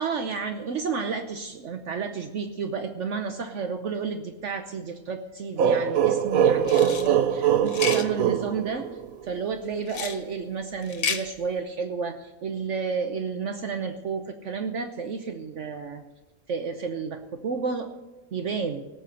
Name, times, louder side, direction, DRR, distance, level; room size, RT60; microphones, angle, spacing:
voice 1, 0.0-8.9 9.3-16.0 16.5-17.9 18.3-18.8, right 5 dB, 60° right, 6 dB, 1.1 m, -31 dB
sound 1, 5.6-9.3, right 9 dB, 90° right, 1.2 m, -22 dB
sound 2, 6.6-7.1 7.7-8.1 9.9-10.2 10.8-11.2, left 6 dB, 75° left, 1.5 m, -30 dB
18.0 x 6.7 x 6.4 m, 1.2 s
omnidirectional pair, 1.5 m